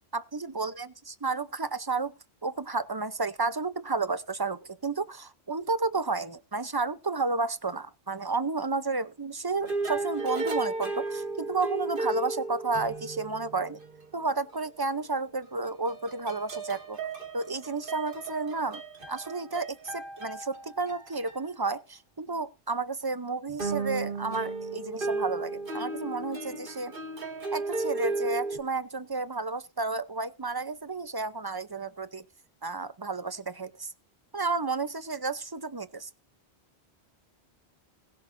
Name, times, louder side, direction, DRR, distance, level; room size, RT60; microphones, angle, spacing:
voice 1, 0.1-2.1 2.4-13.8 14.1-17.0 17.3-26.9 27.5-32.2 32.6-33.9 34.3-36.1, right 3 dB, 25° right, 0.7 m, -32 dB
sound 1, 9.6-14.1 14.5-14.6 15.9-21.4 23.5-28.6, right 3 dB, 55° right, 2.3 m, -34 dB
20.5 x 7.3 x 2.6 m
omnidirectional pair, 1.1 m